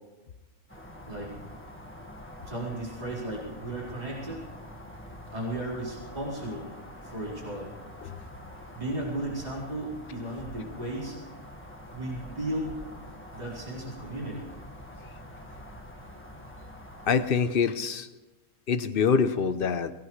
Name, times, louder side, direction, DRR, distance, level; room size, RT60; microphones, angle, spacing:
sound 1, 0.7-17.3, left 1 dB, 10° left, 1.4 m, -45 dB
voice 1, 1.1-1.5 2.5-4.4 5.3-6.7 7.0-7.7 8.7-11.2 11.9-12.8 13.3-14.5, right 1 dB, 25° right, -5 dB, 4.5 m, -35 dB
voice 2, 17.1-18.1 18.7-19.9, left 6 dB, 50° left, 11 dB, 0.7 m, -25 dB
22.5 x 18.0 x 3.2 m, 1.1 s
omnidirectional pair, 1.5 m